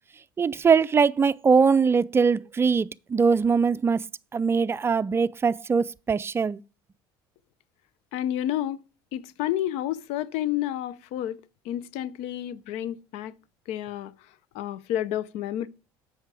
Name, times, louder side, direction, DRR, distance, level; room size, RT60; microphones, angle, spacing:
voice 1, 0.4-4.0 4.3-6.6, right 5 dB, 20° right, 0.4 m, -22 dB
voice 2, 8.1-8.8 9.1-13.3 13.7-14.3 14.5-15.7, left 12 dB, 70° left, 0.7 m, -30 dB
8.1 x 5.8 x 4.9 m
supercardioid pair, 80°, 11 cm